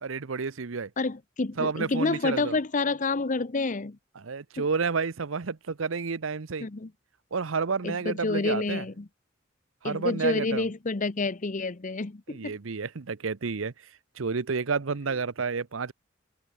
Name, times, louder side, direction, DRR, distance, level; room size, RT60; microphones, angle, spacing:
voice 1, 0.0-0.9 1.6-2.6 4.2-6.7 7.3-8.9 9.8-10.7 12.3-13.7 14.2-15.9, right 5 dB, 85° right, 0.8 m, -30 dB
voice 2, 1.0-4.0 4.6-4.7 6.6-6.9 7.8-9.1 9.8-12.6, left 3 dB, 40° left, 0.8 m, -29 dB
open air
head